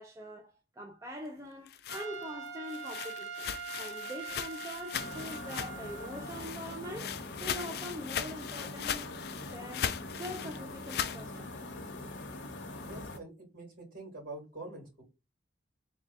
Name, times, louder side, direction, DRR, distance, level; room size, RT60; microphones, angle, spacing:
voice 1, 0.0-9.1 9.5-11.5, equal, 15° right, 0.4 m, -43 dB
sound 1, 1.4-6.0 6.2-11.2, left 9 dB, 55° left, 0.3 m, -39 dB
Trumpet, 1.9-6.5, right 6 dB, 75° right, 0.6 m, -43 dB
sound 2, 4.9-13.2, left 2 dB, 75° left, 0.7 m, -43 dB
voice 2, 12.8-15.0, right 2 dB, 45° right, 2.3 m, -45 dB
3.6 x 2.3 x 4.0 m
head